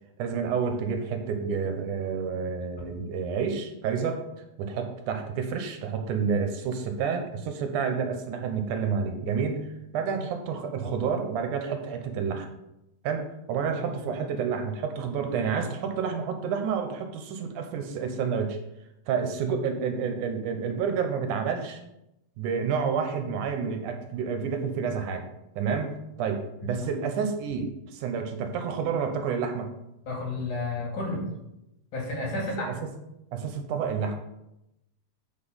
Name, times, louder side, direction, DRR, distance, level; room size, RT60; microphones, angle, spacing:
voice 1, 0.2-4.2 4.6-9.7 9.9-12.5 13.0-18.6 19.1-21.8 22.4-25.3 25.6-29.7 32.6-32.7 33.3-34.2, right 6 dB, 75° right, 6 dB, 2.3 m, -29 dB
voice 2, 30.0-31.2 31.9-32.7, left 2 dB, 65° left, -1 dB, 3.5 m, -31 dB
8.9 x 4.6 x 5.6 m, 0.87 s
omnidirectional pair, 3.7 m